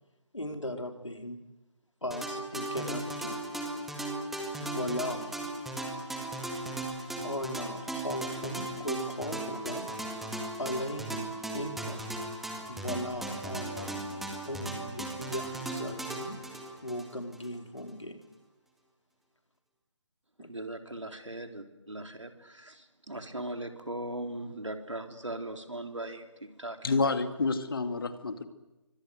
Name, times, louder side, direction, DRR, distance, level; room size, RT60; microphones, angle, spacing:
voice 1, 0.3-1.4 2.0-3.4 4.6-5.4 7.2-9.9 10.6-12.1 12.7-16.4 16.8-18.2 20.4-20.5 20.9-21.0, left 1 dB, 85° left, 4 dB, 4.1 m, -37 dB
sound 1, 2.1-17.5, right 2 dB, ahead, 1.8 m, -37 dB
voice 2, 20.5-26.8, right 1 dB, 80° right, 5 dB, 3.6 m, -39 dB
voice 3, 26.8-28.4, left 4 dB, 50° left, 8 dB, 2.5 m, -29 dB
27.0 x 25.0 x 8.1 m, 1.0 s
figure-of-eight pair, 150°, 15 cm